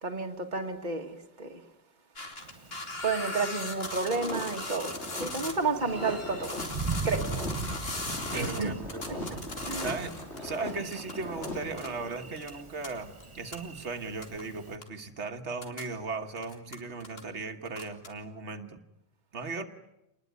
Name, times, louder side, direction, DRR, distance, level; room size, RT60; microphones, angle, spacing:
voice 1, 0.0-1.6 3.0-4.9 5.2-6.6 7.0-7.3 8.3-8.7 9.7-9.8, right 4 dB, 45° right, 1.8 m, -31 dB
sound 1, 2.2-5.5 5.9-10.6 10.9-11.5 11.8-11.9 12.4-12.5 12.8-12.9 13.2-13.3 13.5-13.6 14.2-14.4 14.8-14.9 15.5-15.9 16.4-17.2 17.7-18.1, left 2 dB, 60° left, 3.1 m, -38 dB
Thunder, 2.4-14.8, right 4 dB, 30° right, 1.1 m, -41 dB
sound 2, 3.7-12.3, left 1 dB, 90° left, 4.4 m, -40 dB
voice 2, 8.3-9.3 9.8-10.1 10.4-18.8 19.3-19.7, right 4 dB, 90° right, 1.7 m, -37 dB
27.5 x 20.5 x 9.5 m
omnidirectional pair, 1.1 m